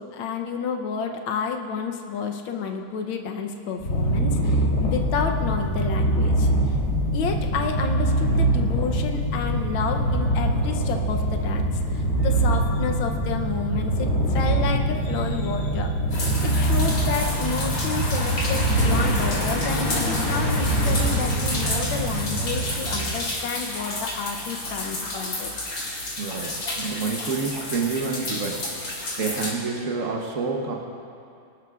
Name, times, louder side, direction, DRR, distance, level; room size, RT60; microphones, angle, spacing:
voice 1, 0.0-6.7 7.1-15.9 16.4-25.5, left 5 dB, 90° left, 3 dB, 1.6 m, -30 dB
Purr, 3.8-23.1, right 1 dB, 35° left, 2.9 m, -24 dB
sound 1, 16.1-29.5, left 2 dB, 70° left, 3.2 m, -30 dB
voice 2, 26.2-28.6 29.2-30.7, right 4 dB, 50° right, 0 dB, 1.2 m, -28 dB
24.0 x 12.0 x 2.4 m, 2.4 s
omnidirectional pair, 2.2 m